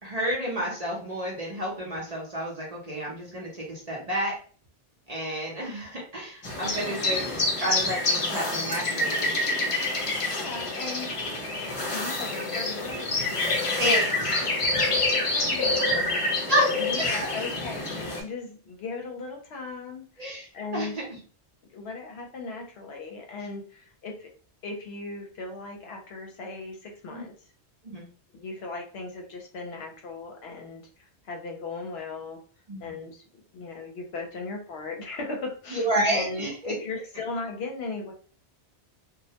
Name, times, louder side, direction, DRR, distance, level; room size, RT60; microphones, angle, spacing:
voice 1, 0.0-4.4 5.1-7.2 7.6-9.3 13.7-14.5 16.5-17.1 20.2-21.2 27.1-27.2 27.8-28.1 32.7-32.9 35.7-36.7, equal, 40° right, -3 dB, 0.6 m, -30 dB
sound 1, 6.4-18.2, left 2 dB, 40° left, 0.5 m, -27 dB
voice 2, 6.6-7.0 10.3-11.1 11.9-13.2 14.7-16.5 16.8-20.3 20.5-20.9 21.7-24.3 24.6-27.3 28.3-32.4 32.8-33.2 33.5-38.1, left 3 dB, 70° left, 2 dB, 0.8 m, -37 dB
2.2 x 2.1 x 2.7 m, 0.41 s
omnidirectional pair, 1.2 m